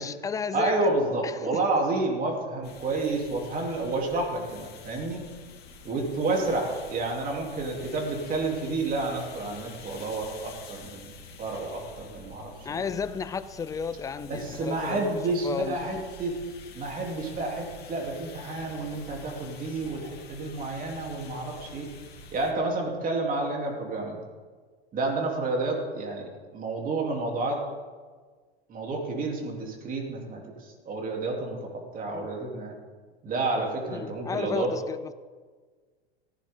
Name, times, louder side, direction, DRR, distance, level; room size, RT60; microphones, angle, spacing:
voice 1, 0.0-0.9 1.2-1.6 6.4-6.6 12.6-15.1 15.4-15.8 32.1-32.3 33.9-35.1, left 6 dB, 10° left, 0.4 m, -33 dB
voice 2, 0.5-5.2 5.8-11.1 11.4-12.8 14.3-16.4 16.7-21.9 22.3-24.2 24.9-27.7 28.7-32.7 33.2-34.7, right 2 dB, 25° right, 3.4 m, -30 dB
sound 1, 2.6-22.5, left 2 dB, 30° left, 3.1 m, -47 dB
17.5 x 16.0 x 3.8 m
hypercardioid pair, 125°, 33 cm